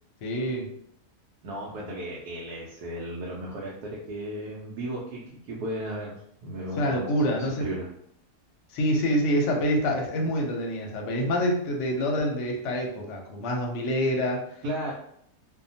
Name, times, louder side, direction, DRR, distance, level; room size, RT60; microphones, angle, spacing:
voice 1, 0.2-0.7 6.8-7.7 8.7-14.4, equal, 60° left, 1 dB, 0.8 m, -26 dB
voice 2, 1.4-7.9 14.6-14.9, right 1 dB, 75° right, -4 dB, 1.1 m, -35 dB
2.7 x 2.2 x 2.6 m, 0.70 s
omnidirectional pair, 1.7 m